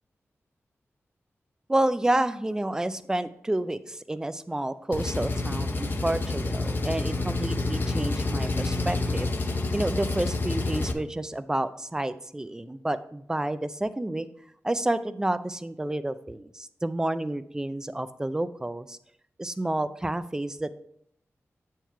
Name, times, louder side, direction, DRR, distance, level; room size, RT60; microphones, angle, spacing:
voice 1, 1.7-9.3 9.7-14.3 14.6-19.0 19.4-20.7, right 1 dB, 15° right, 13 dB, 0.4 m, -29 dB
Engine, 4.9-10.9, left 2 dB, 45° left, 0.7 m, -28 dB
8.7 x 4.6 x 4.5 m, 0.69 s
wide cardioid pair, 135°, 5 cm